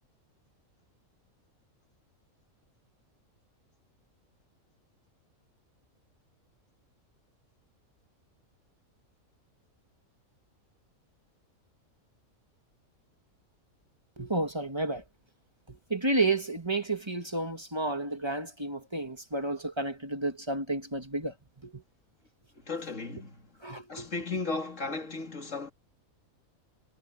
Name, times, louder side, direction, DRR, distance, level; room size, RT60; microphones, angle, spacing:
voice 1, 14.2-15.0 15.7-21.8 23.6-24.1, right 2 dB, 20° right, 2.0 m, -31 dB
voice 2, 22.5-23.5 23.9-25.7, left 3 dB, 60° left, 3.0 m, -35 dB
omnidirectional pair, 1.5 m